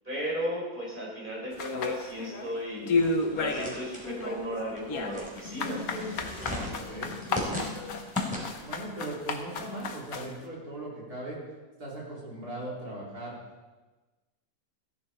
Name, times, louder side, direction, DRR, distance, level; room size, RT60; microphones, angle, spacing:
voice 1, 0.0-3.0 3.3-6.1, equal, 30° right, -4 dB, 4.2 m, -35 dB
sound 1, 1.6-2.5 2.9-3.8 4.0-10.3, left 3 dB, 65° left, 1.5 m, -31 dB
sound 2, 2.9-8.8, left 1 dB, 5° right, 3.4 m, -38 dB
sound 3, 5.4-8.1, left 5 dB, 50° left, 2.3 m, -42 dB
voice 2, 6.7-7.1 8.6-11.4 11.8-13.3, right 1 dB, 75° right, -5 dB, 4.2 m, -38 dB
15.5 x 10.5 x 4.4 m, 1.2 s
omnidirectional pair, 1.6 m